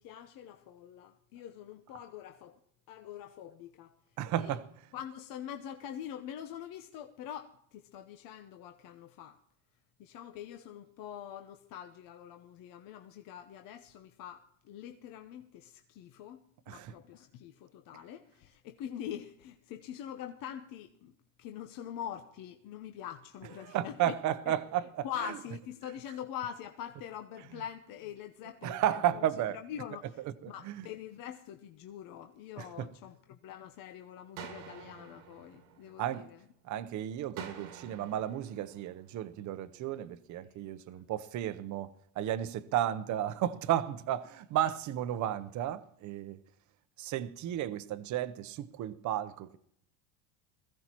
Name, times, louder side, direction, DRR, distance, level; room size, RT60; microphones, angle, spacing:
voice 1, 0.0-2.6 2.9-4.0 4.3-4.6 4.9-9.4 10.0-16.4 16.7-24.2 24.5-24.6 25.0-30.2 30.5-36.4 40.9-41.0, left 10 dB, 50° left, 0.9 m, -44 dB
voice 2, 4.2-4.7 16.7-16.9 23.6-25.1 28.6-29.6 30.4-30.9 32.6-32.9 36.0-36.3 36.6-46.4 47.0-49.6, right 11 dB, 45° right, 0.8 m, -33 dB
sound 1, 34.4-36.4 37.4-39.4, right 6 dB, 90° right, 2.0 m, -49 dB
21.5 x 15.0 x 3.0 m
supercardioid pair, 110°, 43 cm